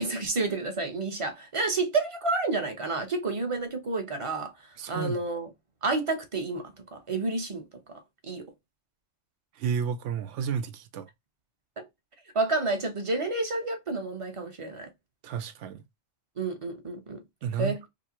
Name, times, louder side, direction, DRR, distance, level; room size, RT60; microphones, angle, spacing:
voice 1, 0.0-4.5 4.9-5.5 5.8-8.5 11.8-11.9 12.3-14.9 16.4-17.2 17.6-17.9, right 3 dB, 30° right, 0.8 m, -30 dB
voice 2, 4.8-5.2 9.6-11.1 15.2-15.8 17.4-17.9, right 7 dB, 90° right, 0.9 m, -31 dB
5.1 x 2.0 x 2.9 m
omnidirectional pair, 1.2 m